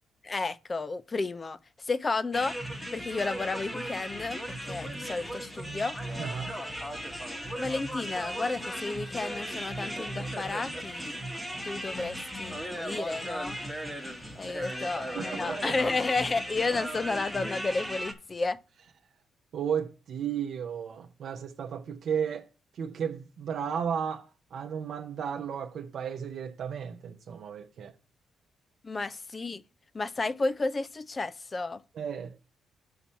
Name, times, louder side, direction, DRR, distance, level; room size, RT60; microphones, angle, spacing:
voice 1, 0.2-2.6 2.9-6.0 7.6-11.2 11.6-13.6 14.4-18.6 28.8-29.6 29.9-31.8, left 3 dB, 30° left, 0.4 m, -32 dB
sound 1, 2.3-18.1, equal, 10° left, 1.2 m, -37 dB
voice 2, 6.2-6.5 15.1-15.8 19.5-22.5 22.7-27.9 31.9-32.3, right 7 dB, 65° right, 0.7 m, -34 dB
6.0 x 5.6 x 5.6 m
cardioid pair, 90°, 0 cm